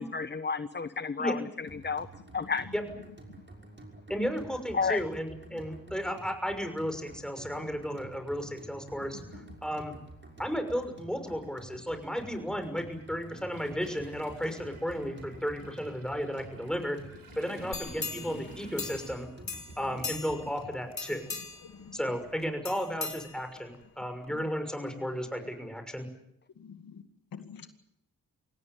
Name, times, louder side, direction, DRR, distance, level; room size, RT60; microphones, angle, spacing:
voice 1, 0.0-2.1 2.3-2.7 4.7-5.0, left 5 dB, 30° left, 12 dB, 1.1 m, -31 dB
sound 1, 1.7-20.9, right 2 dB, 30° right, 6.1 m, -50 dB
voice 2, 4.1-9.2 9.6-10.0 10.4-17.0 17.4-19.3 19.8-21.2 21.9-26.1, equal, ahead, 6 dB, 6.1 m, -34 dB
Toilet flush, 8.6-8.7 10.0-10.2 10.5-19.1, right 2 dB, 75° right, 7.8 m, -53 dB
sound 2, 17.7-19.2 19.5-20.5 20.9-21.7 22.6-23.8 24.2-24.3, left 4 dB, 50° left, 3.8 m, -39 dB
voice 3, 21.6-22.0 24.3-24.4 26.6-27.0 27.3-27.7, left 6 dB, 80° left, 8 dB, 2.2 m, -47 dB
25.5 x 17.5 x 9.5 m, 0.78 s
cardioid pair, 55°, 34 cm